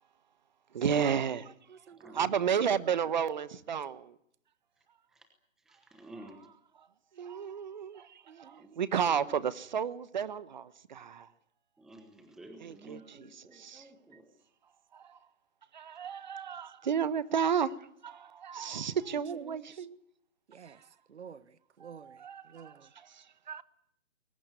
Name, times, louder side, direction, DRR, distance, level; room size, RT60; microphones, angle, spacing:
voice 1, 0.7-1.5 2.1-4.2 6.2-6.5 6.8-6.9 7.1-11.3 12.6-13.9 14.9-15.2 15.7-17.7 18.0-20.0 20.7-20.8 21.8-23.6, right 7 dB, 35° right, 1.1 m, -33 dB
voice 2, 1.7-2.3 8.3-8.8 19.3-19.9 20.5-22.9, right 7 dB, 60° right, 1.4 m, -52 dB
voice 3, 5.7-6.4 8.6-8.7 11.8-14.2, right 1 dB, ahead, 1.1 m, -51 dB
22.0 x 19.5 x 9.5 m
figure-of-eight pair, 155°, 39 cm